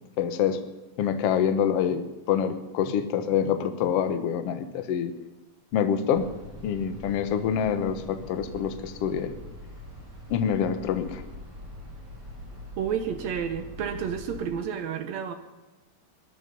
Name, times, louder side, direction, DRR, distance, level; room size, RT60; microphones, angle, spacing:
voice 1, 0.2-0.6 1.0-5.1 5.7-6.2 6.6-9.4 10.3-11.2, left 8 dB, 70° left, 9 dB, 1.4 m, -26 dB
sound 1, 6.1-14.5, left 1 dB, 45° right, 7.2 m, -43 dB
voice 2, 12.8-15.3, right 7 dB, 70° right, 7 dB, 1.7 m, -30 dB
20.0 x 11.0 x 5.4 m, 1.1 s
omnidirectional pair, 4.3 m